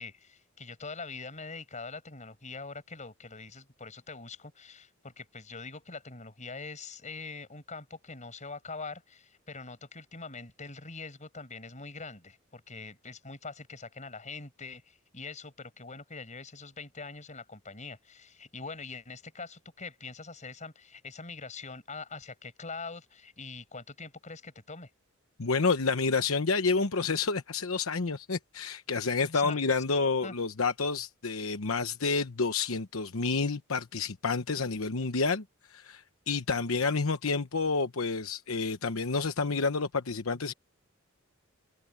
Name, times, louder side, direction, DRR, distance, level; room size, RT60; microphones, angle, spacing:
voice 1, 0.0-24.9 29.3-29.6 30.2-30.3, left 4 dB, 35° left, 5.5 m, -43 dB
voice 2, 25.4-35.4 35.7-40.5, left 4 dB, 80° left, 1.0 m, -29 dB
head